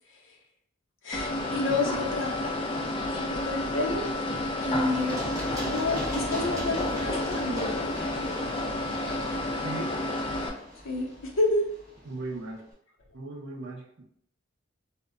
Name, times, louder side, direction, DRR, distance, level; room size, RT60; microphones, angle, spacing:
voice 1, 1.0-2.5 3.4-4.1 4.6-5.2 5.6-7.9 10.8-11.7, left 2 dB, 65° left, 0 dB, 0.6 m, -29 dB
sound 1, 1.1-10.5, left 1 dB, 25° left, 0.3 m, -30 dB
voice 2, 1.7-2.0 4.7-5.0 9.6-9.9 12.1-12.6 13.1-14.0, right 2 dB, 60° right, -1 dB, 0.6 m, -38 dB
Run, 4.7-12.4, left 1 dB, 15° right, 0.9 m, -39 dB
2.1 x 2.0 x 3.5 m, 0.69 s
head